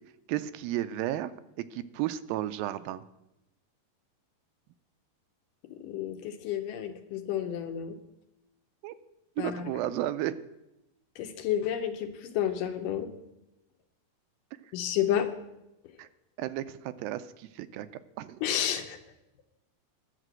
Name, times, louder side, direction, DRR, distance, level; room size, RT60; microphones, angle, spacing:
voice 1, 0.3-1.3 1.7-3.0 8.8-9.0 9.4-10.4 16.0-16.1 16.4-17.9 18.2-18.4, right 13 dB, 85° right, 12 dB, 2.4 m, -33 dB
voice 2, 5.7-8.0 9.4-9.6 11.2-13.1 14.7-15.3 18.4-19.0, left 10 dB, 75° left, 6 dB, 2.3 m, -30 dB
11.0 x 6.6 x 7.7 m, 0.91 s
omnidirectional pair, 4.1 m